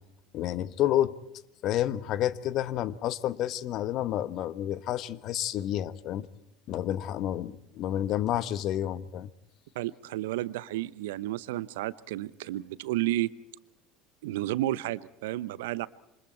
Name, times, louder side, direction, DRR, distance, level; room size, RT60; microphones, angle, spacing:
voice 1, 0.3-1.2 1.6-6.3 6.7-9.3, left 12 dB, 50° left, 1.1 m, -29 dB
voice 2, 9.7-13.3 14.2-15.9, right 15 dB, 70° right, 0.8 m, -32 dB
27.5 x 25.5 x 4.5 m
hypercardioid pair, 70°, 0 cm